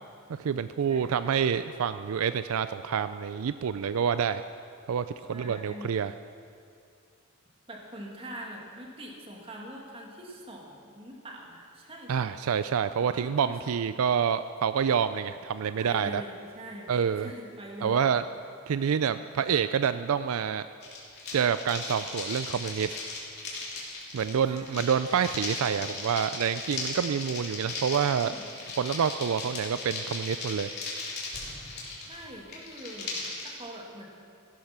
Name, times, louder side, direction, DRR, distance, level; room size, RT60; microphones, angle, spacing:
voice 1, 0.4-4.4 4.9-6.1 12.1-16.2 16.9-17.3 17.8-18.2 18.7-20.7 21.3-23.0 24.1-28.3 28.8-30.7, right 7 dB, 75° right, 12 dB, 0.4 m, -27 dB
voice 2, 0.9-1.2 5.3-5.9 7.7-12.3 13.1-13.8 15.8-16.9 17.1-18.1 24.5-24.8 28.1-28.4 32.1-34.1, equal, 25° right, -1 dB, 2.1 m, -43 dB
sound 1, 20.8-33.5, left 3 dB, 50° left, 3.2 m, -37 dB
16.0 x 12.0 x 6.0 m, 2.4 s
head